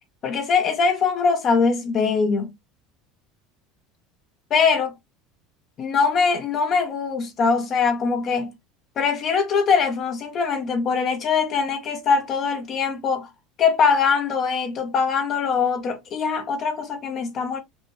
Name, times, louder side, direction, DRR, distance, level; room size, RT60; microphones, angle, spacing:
voice 1, 0.2-2.5 4.5-4.9 5.8-8.5 9.0-13.3 13.6-17.6, left 5 dB, 35° left, 0.7 m, -22 dB
5.3 x 2.2 x 3.1 m
cardioid pair, 160°, 0 cm